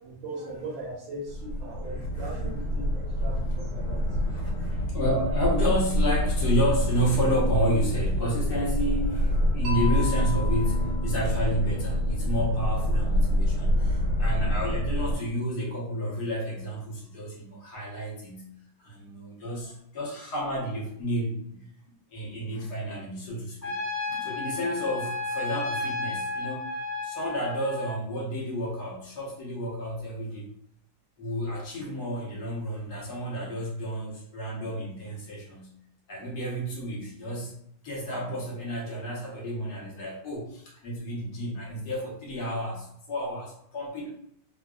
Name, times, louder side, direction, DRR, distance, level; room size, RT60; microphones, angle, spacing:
voice 1, 0.0-4.0, right 2 dB, 80° right, -7 dB, 1.6 m, -39 dB
sound 1, 1.3-15.1, equal, 75° left, 1.7 m, -26 dB
voice 2, 1.6-2.7 4.1-18.5 18.8-21.6 22.1-23.8 24.0-26.7 27.0-30.5 31.2-35.7 36.1-44.1, equal, 60° left, -4 dB, 1.4 m, -31 dB
Mallet percussion, 9.6-13.7, left 2 dB, 60° right, 0.7 m, -37 dB
Trumpet, 23.6-28.0, left 3 dB, 40° left, 0.6 m, -32 dB
3.9 x 2.3 x 2.3 m, 0.70 s
omnidirectional pair, 2.1 m